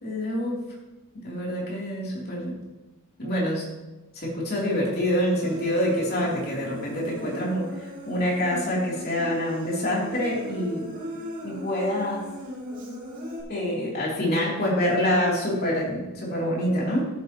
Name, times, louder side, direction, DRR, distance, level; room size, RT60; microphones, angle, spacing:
voice 1, 0.0-0.6 1.2-2.6 3.2-3.6 4.1-10.9 11.4-12.3 13.5-17.1, equal, 45° left, -4 dB, 3.2 m, -26 dB
Human voice, 5.4-13.4, equal, 40° right, 2.5 m, -37 dB
14.0 x 7.8 x 3.0 m, 1.1 s
head